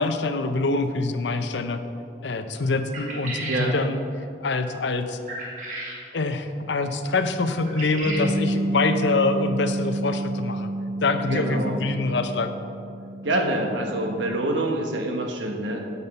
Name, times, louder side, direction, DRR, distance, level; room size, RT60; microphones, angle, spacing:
voice 1, 0.0-1.8 2.2-4.0 4.4-5.2 6.1-10.7 11.0-12.5, left 3 dB, 75° left, 9 dB, 0.6 m, -25 dB
sound 1, 2.9-3.7 5.3-6.0 7.7-8.3, right 1 dB, 40° right, 1.8 m, -33 dB
Bass guitar, 8.0-14.3, right 1 dB, 20° left, 1.7 m, -30 dB
voice 2, 11.3-11.8 13.2-15.8, right 1 dB, 85° right, 3 dB, 1.3 m, -26 dB
11.0 x 5.5 x 5.4 m, 2.4 s
head